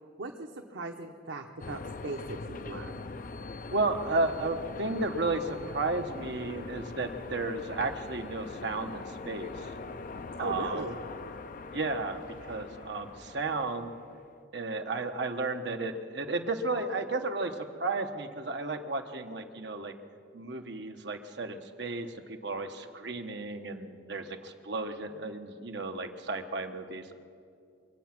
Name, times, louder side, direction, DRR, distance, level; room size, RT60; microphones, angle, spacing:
voice 1, 0.2-3.0 10.4-11.0, right 2 dB, 90° right, 2 dB, 0.9 m, -38 dB
sound 1, 1.6-14.2, left 3 dB, 45° left, 0.5 m, -42 dB
voice 2, 3.7-9.7 10.4-10.9 11.7-12.2 12.5-13.9 14.5-19.9 20.3-27.1, right 3 dB, 65° right, 5 dB, 1.1 m, -33 dB
24.5 x 8.4 x 6.0 m, 2.4 s
head